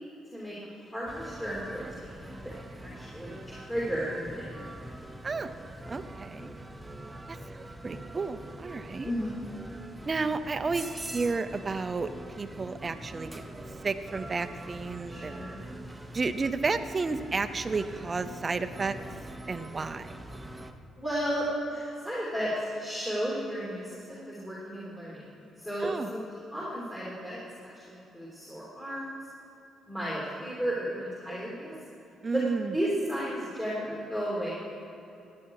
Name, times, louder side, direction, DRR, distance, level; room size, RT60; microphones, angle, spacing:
voice 1, 0.9-2.5 2.8-4.5 9.0-9.3 15.1-15.6 21.0-27.4 27.7-29.1 29.9-31.7 32.3-32.4 32.7-34.5, equal, 10° left, -7 dB, 3.1 m, -34 dB
sound 1, 1.1-20.7, right 1 dB, 10° right, 0.9 m, -43 dB
voice 2, 5.2-5.5 5.9-6.5 7.3-9.1 10.0-12.1 12.4-13.5 13.8-15.5 16.1-19.0 19.5-20.1 25.8-26.1 32.2-32.7, right 4 dB, 30° right, 9 dB, 0.6 m, -32 dB
16.0 x 9.7 x 4.8 m, 2.9 s
cardioid pair, 90°, 0 cm